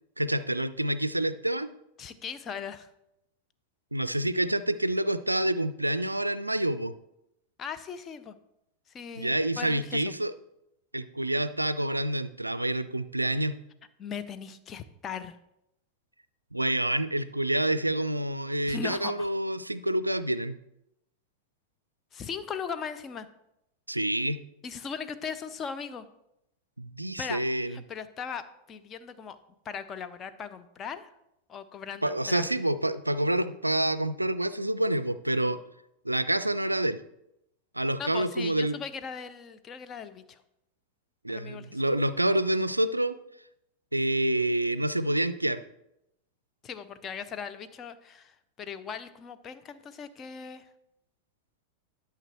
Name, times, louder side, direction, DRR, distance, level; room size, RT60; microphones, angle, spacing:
voice 1, 0.2-1.7 3.9-6.9 9.2-10.3 10.9-13.6 16.5-20.5 23.9-24.4 26.8-27.8 32.0-35.6 36.0-37.0 37.7-38.8 41.2-43.2 43.9-45.6, right 1 dB, 85° right, 15 dB, 0.3 m, -27 dB
voice 2, 2.0-2.9 7.6-8.3 8.9-10.1 14.0-15.4 18.7-19.3 22.1-23.3 24.6-26.1 27.2-28.4 28.7-29.4 29.6-31.1 31.5-32.5 38.0-40.4 41.3-41.8 46.6-50.7, left 6 dB, 25° left, 10 dB, 0.5 m, -38 dB
11.5 x 5.9 x 3.0 m, 0.83 s
figure-of-eight pair, 90°, 0 cm